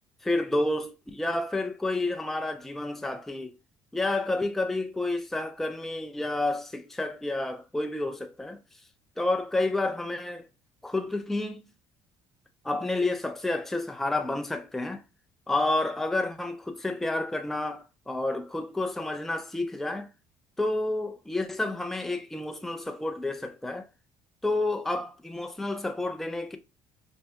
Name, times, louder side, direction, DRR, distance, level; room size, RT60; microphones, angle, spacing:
voice 1, 0.2-3.5 3.9-8.6 9.2-10.5 10.8-11.7 12.6-15.0 15.5-20.1 20.6-23.9 24.4-26.6, left 2 dB, 5° left, 0.3 m, -30 dB
4.4 x 2.6 x 2.2 m
cardioid pair, 135°, 8 cm